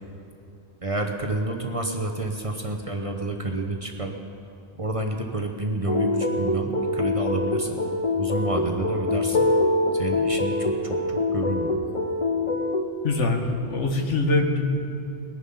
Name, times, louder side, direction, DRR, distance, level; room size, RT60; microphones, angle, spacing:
voice 1, 0.8-4.1 4.7-7.8 8.2-9.4 9.9-11.8, right 2 dB, 30° right, 3 dB, 0.8 m, -29 dB
sound 1, 5.9-12.8, left 2 dB, 35° left, 0.7 m, -24 dB
voice 2, 13.0-14.7, left 2 dB, 75° left, 3 dB, 1.6 m, -23 dB
21.0 x 7.1 x 5.5 m, 2.7 s
omnidirectional pair, 1.2 m